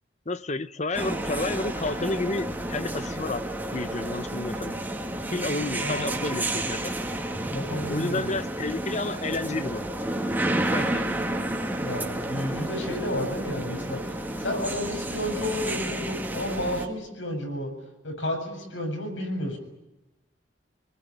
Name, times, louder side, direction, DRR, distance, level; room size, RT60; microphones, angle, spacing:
voice 1, 0.3-3.4 3.7-4.8 5.3-7.0 7.9-9.8 10.7-11.0, left 2 dB, 35° left, 14 dB, 0.9 m, -30 dB
sound 1, 0.9-16.9, right 1 dB, 10° right, 2.4 m, -31 dB
voice 2, 5.8-6.2 7.5-8.3 11.8-14.0 14.4-17.7 18.0-19.6, left 1 dB, 75° left, 3 dB, 7.6 m, -31 dB
26.5 x 20.5 x 10.0 m, 0.97 s
head